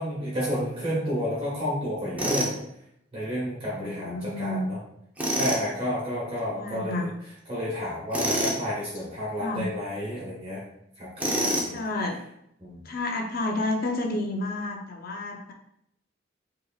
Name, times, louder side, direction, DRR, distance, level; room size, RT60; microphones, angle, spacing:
voice 1, 0.0-2.5 3.1-4.8 5.3-7.1 7.5-10.6 11.0-11.7 12.6-12.8, equal, 30° right, -8 dB, 1.4 m, -31 dB
Tools, 2.2-2.6 5.2-5.6 8.1-8.6 11.2-11.8, equal, 10° right, 0.7 m, -26 dB
voice 2, 3.7-4.7 6.5-7.1 9.4-9.7 11.7-12.2 12.8-15.5, left 2 dB, 50° left, 2 dB, 0.5 m, -30 dB
4.9 x 2.9 x 2.3 m, 0.76 s
head